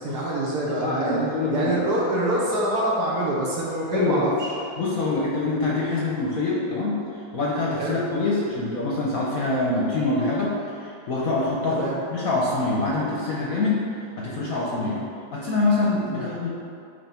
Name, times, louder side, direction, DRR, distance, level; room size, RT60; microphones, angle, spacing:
voice 1, 0.0-1.2 1.5-4.5 7.8-7.9 11.7-12.0 14.8-15.0 16.1-16.3, right 1 dB, 60° right, -4 dB, 1.4 m, -26 dB
voice 2, 0.7-1.8 3.9-4.3 4.8-7.0 7.3-13.8 14.2-15.0 15.3-16.5, left 2 dB, 55° left, -4 dB, 1.0 m, -25 dB
9.2 x 3.1 x 4.4 m, 2.4 s
omnidirectional pair, 2.2 m